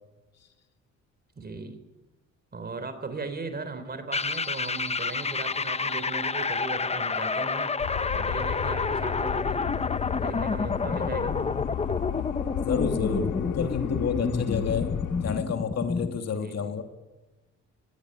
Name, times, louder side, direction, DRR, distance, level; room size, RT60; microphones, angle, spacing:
voice 1, 1.4-1.8 2.5-7.8 8.1-9.6 10.1-11.4 16.3-16.7, right 4 dB, 30° right, 11 dB, 3.7 m, -37 dB
sound 1, 4.1-16.2, left 4 dB, 20° left, 0.8 m, -29 dB
sound 2, 7.8-15.4, left 10 dB, 80° left, 1.8 m, -34 dB
voice 2, 12.6-14.9 15.2-16.8, left 6 dB, 60° left, 5 dB, 2.9 m, -29 dB
21.0 x 16.5 x 9.9 m, 1.2 s
cardioid pair, 90°, 30 cm